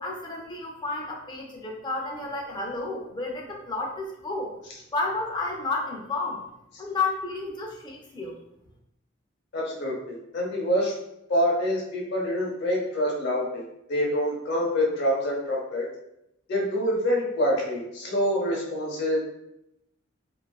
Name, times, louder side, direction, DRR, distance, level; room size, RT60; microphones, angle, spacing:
voice 1, 0.0-4.5 4.9-6.4 6.8-8.4, left 3 dB, 20° left, 0 dB, 0.4 m, -31 dB
voice 2, 9.5-10.9 11.3-13.6 13.9-15.9 16.5-19.2, equal, 60° left, -2 dB, 0.7 m, -26 dB
2.6 x 2.4 x 2.2 m, 0.82 s
head